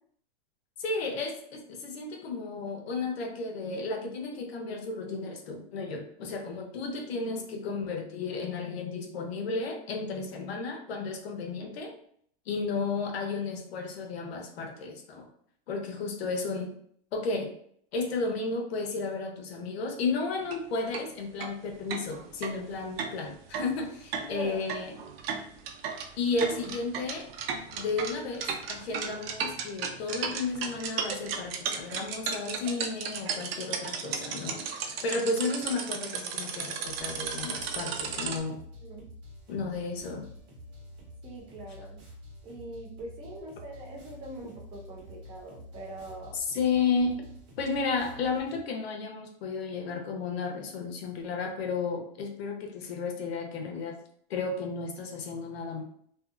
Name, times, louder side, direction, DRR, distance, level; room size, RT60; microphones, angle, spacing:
voice 1, 0.8-11.9 12.5-15.3 15.7-16.7 17.1-17.5 17.9-25.0 26.2-27.3 27.7-38.6 39.5-40.3 46.3-47.2 47.6-54.0 54.3-55.8, left 4 dB, 80° left, 3 dB, 0.8 m, -33 dB
sound 1, 20.4-20.6 20.9-21.0 21.4-21.5 21.9-38.4, right 6 dB, 70° right, 0.5 m, -35 dB
voice 2, 24.1-24.6 38.8-39.1 41.2-42.0 42.4-46.4, right 2 dB, 20° right, -1 dB, 0.4 m, -42 dB
sound 2, 36.8-48.6, left 1 dB, 45° right, 1.1 m, -48 dB
2.6 x 2.3 x 2.4 m, 0.63 s
supercardioid pair, 145°, 30 cm